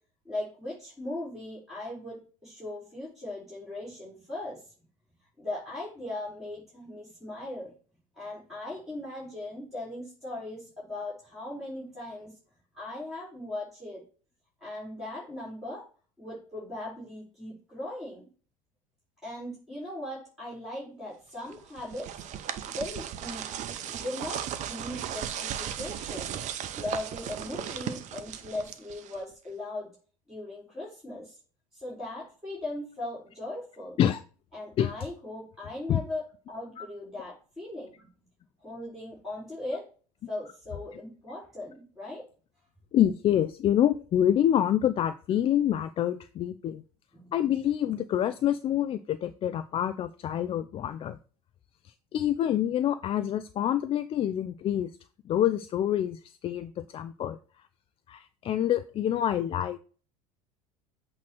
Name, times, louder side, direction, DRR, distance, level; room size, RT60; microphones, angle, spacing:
voice 1, 0.2-4.6 5.4-7.7 8.1-12.4 12.7-14.0 14.6-15.8 16.2-18.3 19.2-22.1 22.7-23.5 23.8-24.4 24.7-26.4 26.7-29.9 30.3-31.4 31.7-34.0 34.5-36.2 36.5-38.1 38.6-39.8 40.3-42.2 47.1-47.3, left 1 dB, ahead, -7 dB, 4.3 m, -38 dB
sound 1, 21.5-29.3, right 10 dB, 40° right, 0.8 m, -36 dB
voice 2, 42.9-46.8 47.3-51.2 51.8-54.9 55.3-57.4 58.1-59.8, left 10 dB, 30° left, 11 dB, 0.4 m, -27 dB
8.2 x 3.1 x 6.0 m, 0.39 s
figure-of-eight pair, 70°, 19 cm